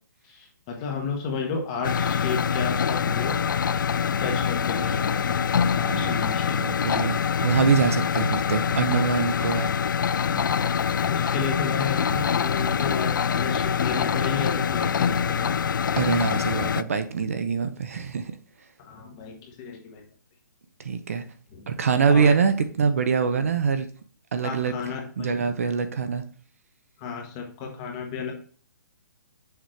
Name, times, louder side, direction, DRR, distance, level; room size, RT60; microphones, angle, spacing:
voice 1, 0.2-3.4 4.2-5.4 5.7-6.9 11.0-15.6 18.8-20.0 21.5-21.7 22.1-22.3 24.4-25.4 27.0-28.3, left 5 dB, 15° left, 0.9 m, -32 dB
sound 1, 1.8-16.8, left 7 dB, 80° left, 0.4 m, -25 dB
voice 2, 6.6-9.7 10.4-10.5 10.8-10.9 16.0-18.3 20.8-21.2 21.7-23.9 24.3-24.8 25.2-26.2, right 6 dB, 45° right, 0.6 m, -24 dB
6.5 x 4.9 x 3.1 m
hypercardioid pair, 175°, 10 cm